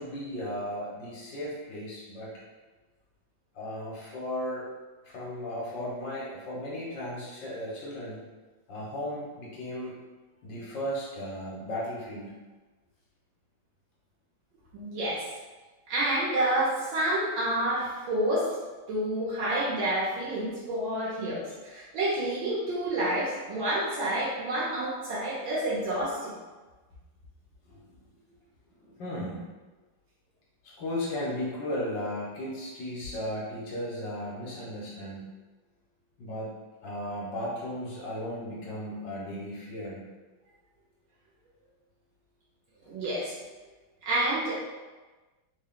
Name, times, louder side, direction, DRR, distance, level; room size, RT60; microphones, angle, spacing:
voice 1, 0.0-2.3 3.5-4.7 5.0-8.2 8.7-9.9 10.4-12.3 27.7-27.9 28.8-29.5 30.6-35.3 36.2-36.5 36.8-40.0, equal, 65° left, -6 dB, 1.6 m, -35 dB
voice 2, 14.7-15.2 15.9-18.5 18.9-26.3 42.9-43.3 44.0-44.5, right 1 dB, 80° right, -8 dB, 1.7 m, -29 dB
3.8 x 2.3 x 3.7 m, 1.3 s
omnidirectional pair, 2.1 m